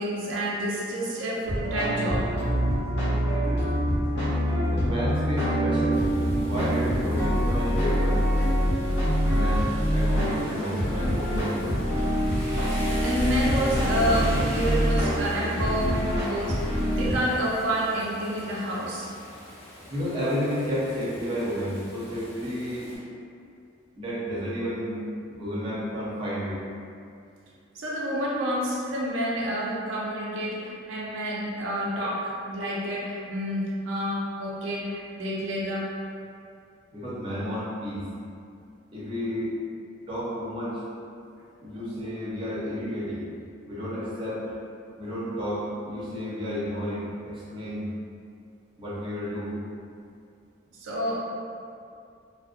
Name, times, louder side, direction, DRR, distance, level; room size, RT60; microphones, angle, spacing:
voice 1, 0.0-2.3 13.0-19.1 27.7-35.9 50.7-51.2, equal, 75° right, -5 dB, 0.4 m, -29 dB
sound 1, 1.5-17.1, equal, 70° left, 0.8 m, -25 dB
voice 2, 4.7-8.2 9.3-11.8 19.9-22.9 24.0-25.0 25.3-26.5 36.9-38.1 38.9-39.5 40.1-40.8 41.6-43.2 43.7-44.5 45.0-47.9 48.8-49.6, equal, 25° right, -9 dB, 0.5 m, -31 dB
Rain, 5.9-23.0, equal, 30° left, 0.6 m, -38 dB
2.5 x 2.0 x 2.4 m, 2.4 s
head